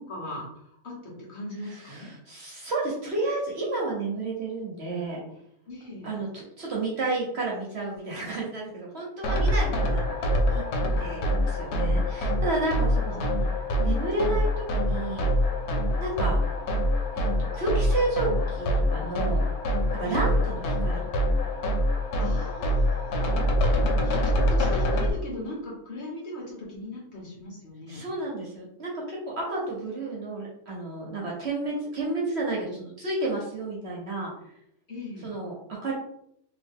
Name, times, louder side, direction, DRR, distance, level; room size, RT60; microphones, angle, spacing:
voice 1, 0.0-2.1 5.7-6.2 10.9-11.6 12.7-13.4 20.0-20.4 22.2-23.3 24.0-28.0 34.9-35.3, left 1 dB, 50° left, -4 dB, 1.3 m, -39 dB
voice 2, 1.8-5.2 6.0-10.0 10.5-10.6 11.0-13.2 13.8-15.3 16.0-16.4 17.1-19.4 19.9-21.1 27.9-34.3 35.2-35.6 35.8-35.9, right 2 dB, 55° right, -3 dB, 0.9 m, -31 dB
sound 1, 9.2-25.1, equal, 90° left, 1.1 m, -25 dB
3.0 x 2.4 x 3.5 m, 0.72 s
omnidirectional pair, 1.6 m